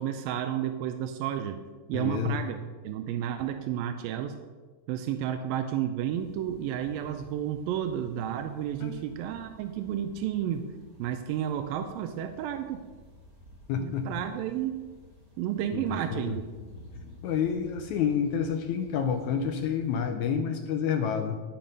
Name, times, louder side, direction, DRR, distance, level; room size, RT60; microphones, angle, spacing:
voice 1, 0.0-1.6 1.9-2.6 2.8-4.4 4.9-10.7 11.0-12.8 13.8-14.8 15.4-16.4, right 10 dB, 85° right, 7 dB, 2.4 m, -31 dB
voice 2, 1.9-2.4 8.8-9.0 13.7-14.1 15.7-16.3 17.2-21.4, left 7 dB, 80° left, 6 dB, 1.7 m, -29 dB
sound 1, 6.1-20.0, left 1 dB, 30° right, 3.7 m, -53 dB
10.0 x 7.4 x 5.3 m, 1.4 s
omnidirectional pair, 4.0 m